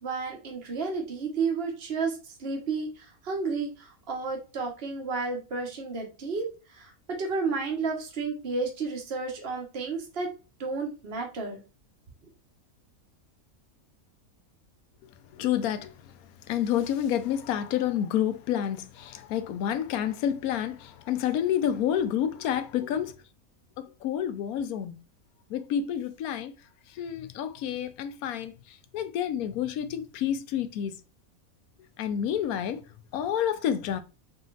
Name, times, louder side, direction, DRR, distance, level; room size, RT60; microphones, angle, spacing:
voice 1, 0.0-6.9 7.2-10.3 10.6-11.6, right 4 dB, 45° right, 1.4 m, -32 dB
voice 2, 15.3-16.1 16.5-23.1 23.8-25.0 25.5-26.5 26.9-31.0 32.0-32.8 33.1-34.0, left 10 dB, 85° left, 1.1 m, -29 dB
4.1 x 3.8 x 2.4 m
omnidirectional pair, 1.5 m